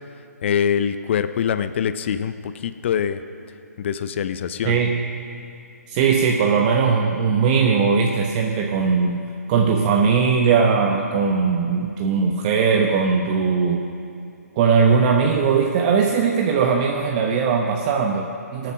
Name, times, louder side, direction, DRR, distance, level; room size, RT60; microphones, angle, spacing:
voice 1, 0.4-3.2 3.8-4.8, left 8 dB, 45° left, 12 dB, 0.6 m, -24 dB
voice 2, 4.6-5.0 5.9-9.2 9.5-13.8 14.6-18.7, right 5 dB, 30° right, 1 dB, 0.9 m, -19 dB
19.0 x 9.1 x 6.2 m, 2.6 s
figure-of-eight pair, 140°, 9 cm